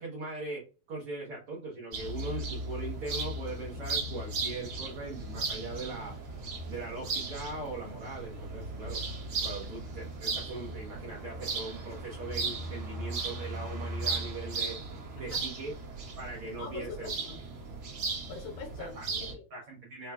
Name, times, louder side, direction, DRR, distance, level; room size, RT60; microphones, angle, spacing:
voice 1, 0.0-6.1 6.7-9.0 9.4-14.8 15.1-15.7 16.2-17.1 18.8-19.1 19.5-20.1, right 2 dB, 85° right, -3 dB, 1.2 m, -40 dB
sound 1, 1.9-19.3, right 3 dB, 65° right, 1.3 m, -36 dB
voice 2, 16.6-17.4 18.3-19.4, left 6 dB, 75° left, 4 dB, 2.3 m, -43 dB
5.7 x 2.2 x 2.3 m, 0.34 s
omnidirectional pair, 4.0 m